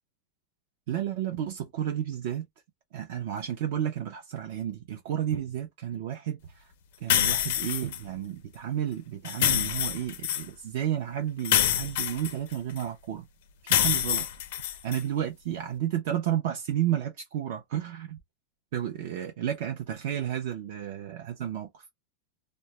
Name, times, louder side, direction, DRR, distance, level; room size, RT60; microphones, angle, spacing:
voice 1, 0.9-2.5 2.9-6.6 7.0-13.3 13.6-14.3 14.8-18.2 18.7-21.8, right 10 dB, 45° right, 0.4 m, -32 dB
sound 1, 7.1-8.0 9.2-10.4 11.4-12.8 13.7-15.0, left 11 dB, 50° left, 0.4 m, -26 dB
2.2 x 2.0 x 2.9 m
supercardioid pair, 180°, 0 cm